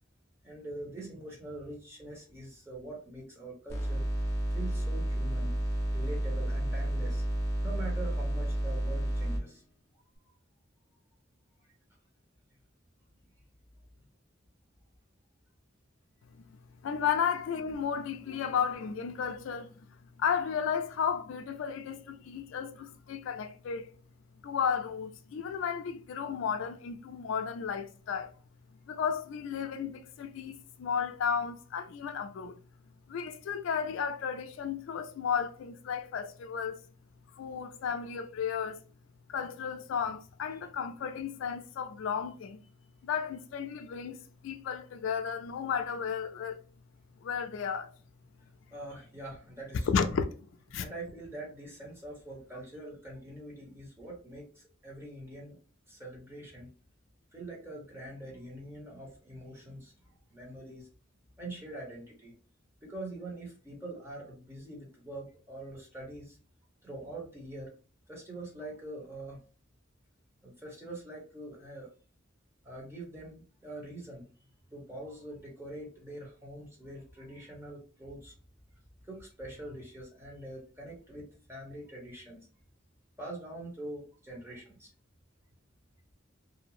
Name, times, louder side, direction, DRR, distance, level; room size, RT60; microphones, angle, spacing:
voice 1, 0.4-4.0 4.5-5.5 5.9-7.2 7.6-9.6 13.9-14.1 48.4-50.0 50.8-55.6 55.9-56.7 57.3-60.9 61.4-62.3 62.8-66.4 66.8-67.7 68.1-69.4 70.4-71.9 72.6-74.3 74.7-78.3 79.1-82.5 83.2-84.9, right 1 dB, 10° right, 0.9 m, -44 dB
sound 1, 3.7-9.4, right 1 dB, 15° left, 0.5 m, -31 dB
voice 2, 16.8-19.7 20.2-23.9 24.4-28.3 28.9-32.6 33.1-36.8 37.4-38.8 39.3-42.6 43.0-44.2 44.4-46.6 47.2-47.9 49.9-50.2 50.7-50.9, left 7 dB, 70° left, 0.3 m, -33 dB
2.5 x 2.0 x 2.9 m
head